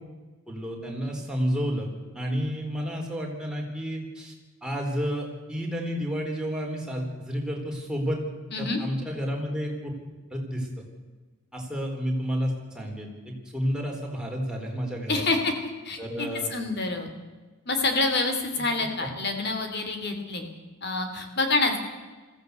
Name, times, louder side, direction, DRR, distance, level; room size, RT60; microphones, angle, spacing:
voice 1, 0.5-1.9 2.1-4.3 4.6-8.2 8.6-9.9 10.3-10.7 11.5-15.2 16.0-16.5, equal, 5° right, 0 dB, 4.0 m, -30 dB
voice 2, 15.1-15.5 15.8-17.1 17.7-20.5 20.8-21.8, left 3 dB, 50° left, 5 dB, 2.9 m, -27 dB
21.0 x 15.5 x 8.2 m, 1.3 s
head